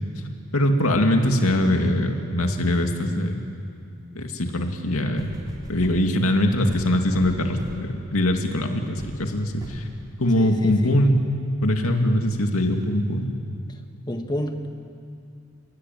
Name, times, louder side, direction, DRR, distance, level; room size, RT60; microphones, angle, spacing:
voice 1, 0.5-3.5 4.2-5.3 5.7-9.8 10.2-11.2 11.6-13.3, left 1 dB, 85° left, 4 dB, 2.4 m, -22 dB
sound 1, 5.2-6.1 6.7-7.9 8.4-8.6 9.0-9.2 9.6-9.9 10.6-10.7, equal, 20° right, 3.3 m, -39 dB
voice 2, 10.3-11.0 14.1-14.7, equal, 20° left, 5 dB, 1.4 m, -30 dB
29.5 x 17.0 x 9.3 m, 2.5 s
head